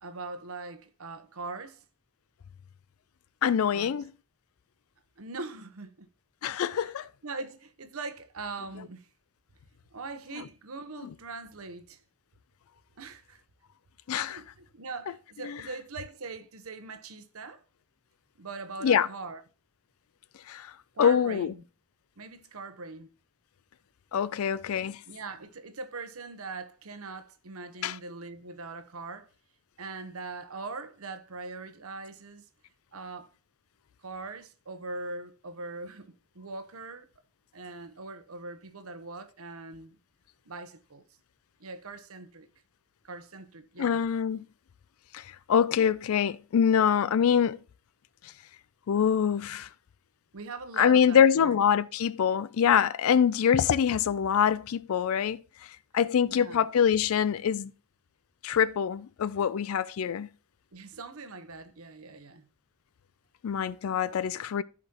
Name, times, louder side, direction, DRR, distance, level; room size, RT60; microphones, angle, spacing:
voice 1, 0.0-1.9 3.7-4.0 5.2-6.1 6.7-6.9 7.2-9.1 9.9-12.0 13.0-13.4 14.2-17.6 18.4-19.4 20.9-21.6 22.2-23.1 25.1-29.3 29.8-32.4 32.9-33.3 34.0-37.1 37.5-40.0 40.4-41.0 41.6-42.5 43.0-44.0 50.3-51.6 56.3-56.7 60.7-62.5, right 3 dB, 75° right, 0.9 m, -41 dB
voice 2, 3.4-4.1 6.4-7.1 14.1-14.4 15.4-15.6 18.8-19.1 20.5-20.7 21.0-21.5 24.1-25.0 27.8-28.0 43.8-44.4 45.1-47.6 48.9-49.7 50.8-55.4 55.9-57.7 58.4-60.3 63.4-64.6, left 8 dB, 75° left, 0.4 m, -24 dB
14.5 x 5.0 x 2.9 m
head